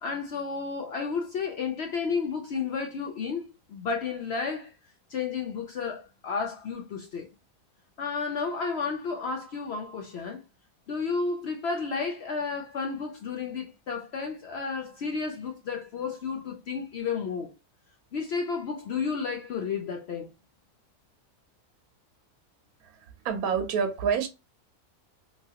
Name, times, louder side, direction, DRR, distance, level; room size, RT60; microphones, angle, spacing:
voice 1, 0.0-4.7 5.1-7.3 8.0-10.4 10.9-17.5 18.1-20.3, left 5 dB, 65° left, 0.7 m, -32 dB
voice 2, 22.8-24.3, right 6 dB, 90° right, 1.1 m, -28 dB
3.0 x 2.4 x 2.7 m
omnidirectional pair, 1.5 m